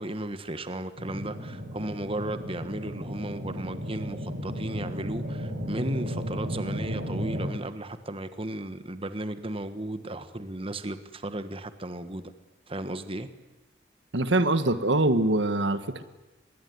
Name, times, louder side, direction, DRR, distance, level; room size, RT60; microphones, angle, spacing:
voice 1, 0.0-12.3 12.7-13.3, right 1 dB, 30° right, 11 dB, 1.4 m, -35 dB
sound 1, 1.0-7.5, equal, 60° right, 5.7 m, -34 dB
voice 2, 14.1-16.0, right 2 dB, 85° right, 11 dB, 1.6 m, -24 dB
26.0 x 21.5 x 9.6 m, 1.1 s
head